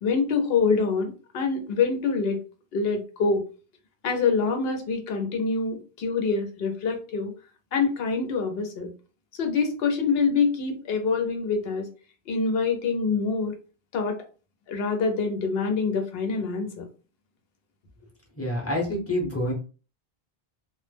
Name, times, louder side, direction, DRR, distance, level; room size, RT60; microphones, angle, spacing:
voice 1, 0.0-2.4 2.7-3.4 4.0-7.3 7.7-8.9 9.4-11.9 12.3-13.6 13.9-14.2 14.7-16.8, left 4 dB, 75° left, 4 dB, 0.9 m, -25 dB
voice 2, 18.4-19.5, left 1 dB, 15° left, -2 dB, 0.7 m, -27 dB
2.2 x 2.0 x 3.2 m, 0.35 s
omnidirectional pair, 1.1 m